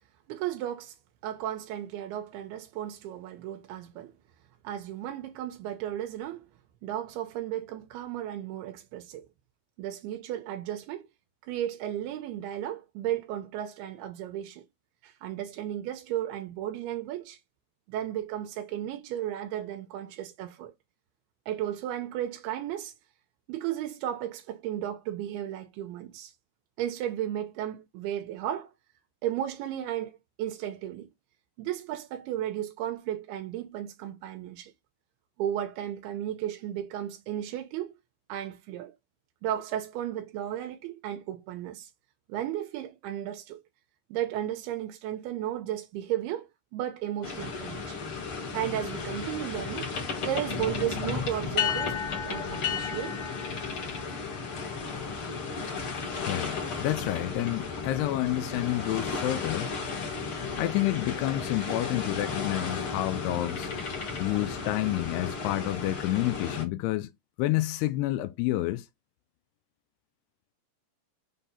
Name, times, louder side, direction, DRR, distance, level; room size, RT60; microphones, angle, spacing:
voice 1, 0.3-1.0 1.2-4.1 4.6-6.5 6.8-9.3 9.8-11.1 11.4-14.7 15.0-17.4 17.9-20.7 21.5-22.9 23.5-26.3 26.8-28.7 29.2-31.1 31.6-34.7 35.4-37.9 38.3-38.9 39.4-41.9 42.3-43.6 44.1-46.5 46.7-48.1 48.5-49.9 50.2-53.2, right 11 dB, 85° right, 2.6 m, -34 dB
sound 1, 47.2-66.7, left 5 dB, 45° left, 1.8 m, -34 dB
voice 2, 56.3-59.7 60.6-63.7 64.2-67.1 67.4-68.9, left 16 dB, 85° left, 2.7 m, -29 dB
6.7 x 2.7 x 5.7 m
omnidirectional pair, 4.7 m